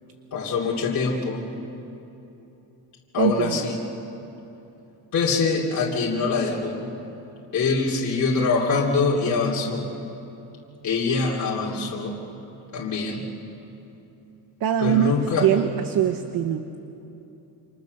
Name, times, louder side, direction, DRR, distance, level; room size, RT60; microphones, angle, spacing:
voice 1, 0.3-1.4 3.1-3.8 5.1-6.9 7.5-9.8 10.8-12.1 12.7-13.2 14.8-15.5, left 4 dB, 40° left, -3 dB, 3.0 m, -24 dB
voice 2, 3.2-3.7 14.6-16.6, right 9 dB, 55° right, 8 dB, 1.0 m, -23 dB
28.5 x 27.0 x 6.7 m, 2.9 s
cardioid pair, 160°, 43 cm